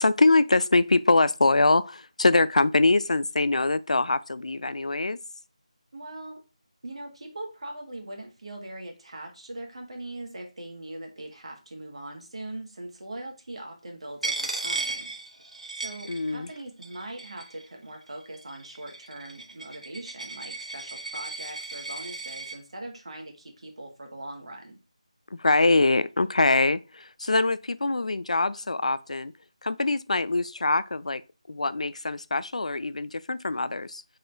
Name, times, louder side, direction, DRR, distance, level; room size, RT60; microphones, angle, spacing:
voice 1, 0.0-5.2 16.1-16.5 25.3-29.3 29.6-31.2 31.5-34.0, left 2 dB, 75° left, 0.3 m, -23 dB
voice 2, 5.9-6.4 6.8-15.1 15.8-24.8, right 1 dB, 55° right, 1.5 m, -41 dB
Coin (dropping), 14.2-16.6 16.8-17.6 18.3-22.6, right 3 dB, 80° right, 1.2 m, -35 dB
4.2 x 3.7 x 3.3 m
figure-of-eight pair, 170°, 4 cm